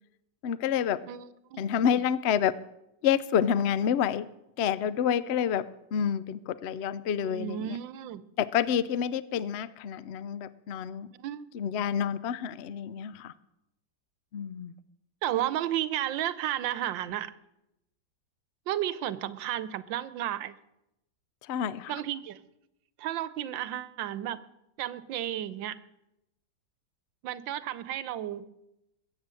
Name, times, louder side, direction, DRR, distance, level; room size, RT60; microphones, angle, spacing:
voice 1, 0.4-1.1 1.6-2.5 3.0-4.3 4.6-7.8 8.4-11.1 11.5-13.3 14.3-14.7 21.4-21.9, left 8 dB, 90° left, 17 dB, 0.5 m, -28 dB
voice 2, 1.1-1.6 1.9-2.0 7.2-8.2 11.2-11.5 15.2-17.3 18.7-20.6 21.9-22.4 23.0-24.4 24.8-25.8 27.2-28.4, right 12 dB, 90° right, 15 dB, 1.5 m, -33 dB
22.0 x 8.7 x 7.6 m, 0.87 s
omnidirectional pair, 2.0 m